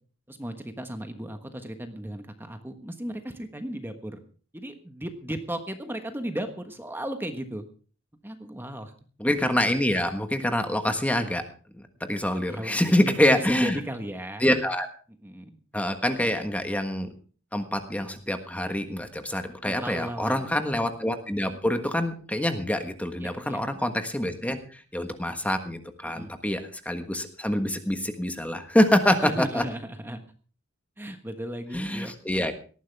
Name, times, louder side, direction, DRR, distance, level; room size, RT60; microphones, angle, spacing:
voice 1, 0.3-4.2 4.5-7.6 8.2-8.9 12.5-14.4 15.2-15.6 19.6-20.5 23.2-23.6 26.0-26.3 29.2-30.2 31.0-32.1, right 1 dB, 10° right, 7 dB, 1.4 m, -35 dB
voice 2, 9.2-11.4 11.7-11.8 12.1-13.8 14.4-14.9 15.7-17.1 17.5-29.6 31.7-32.5, left 1 dB, 5° left, 7 dB, 1.4 m, -26 dB
18.5 x 14.0 x 3.5 m, 0.39 s
head